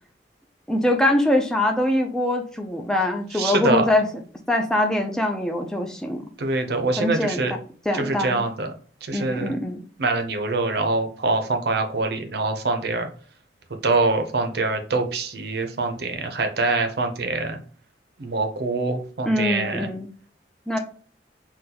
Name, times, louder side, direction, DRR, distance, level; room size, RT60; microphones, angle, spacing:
voice 1, 0.7-4.1 4.5-6.2 7.0-7.4 7.9-8.4 9.1-9.8 19.3-20.1 20.7-20.8, left 1 dB, 5° left, 2 dB, 0.3 m, -23 dB
voice 2, 3.3-3.9 6.4-7.5 7.9-8.7 9.0-9.6 10.0-13.1 13.8-17.6 18.2-19.9, right 3 dB, 60° right, 6 dB, 0.5 m, -24 dB
3.8 x 2.2 x 2.8 m, 0.42 s
head